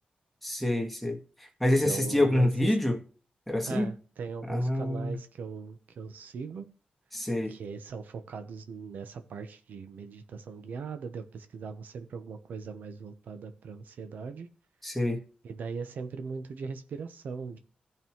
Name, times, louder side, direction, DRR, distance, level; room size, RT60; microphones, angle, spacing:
voice 1, 0.4-1.2 1.6-3.0 3.5-3.9 4.5-5.2 7.1-7.5 14.8-15.2, left 1 dB, 5° left, 1.7 m, -26 dB
voice 2, 1.8-2.8 3.6-6.6 7.5-14.5 15.4-17.6, right 5 dB, 90° right, 0.9 m, -39 dB
16.0 x 5.4 x 3.0 m
cardioid pair, 85°, 3 cm